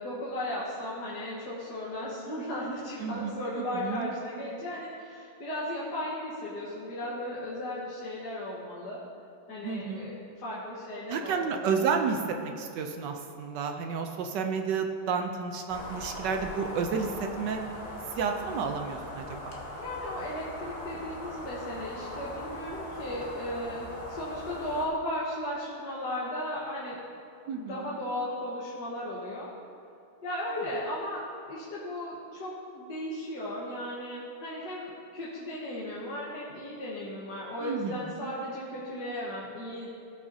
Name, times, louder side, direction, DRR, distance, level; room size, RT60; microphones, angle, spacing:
voice 1, 0.0-9.0 9.5-11.7 19.7-27.0 27.6-29.5 30.2-39.9, left 1 dB, 55° left, -7 dB, 1.8 m, -36 dB
voice 2, 3.0-4.1 9.6-10.1 11.1-17.6 18.2-19.5 27.5-27.9 37.6-38.3, right 5 dB, 70° right, 4 dB, 1.1 m, -31 dB
sound 1, 15.7-24.9, left 1 dB, 40° left, 1.0 m, -40 dB
17.0 x 5.8 x 2.7 m, 2.6 s
omnidirectional pair, 2.4 m